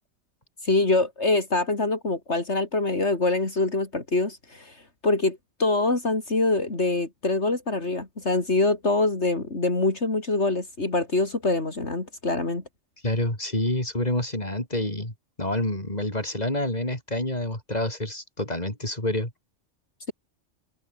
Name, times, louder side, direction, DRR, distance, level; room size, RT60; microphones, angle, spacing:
voice 1, 0.6-12.6, left 2 dB, 70° left, 4.1 m, -25 dB
voice 2, 13.0-19.3, left 1 dB, 35° left, 6.6 m, -28 dB
omnidirectional pair, 1.2 m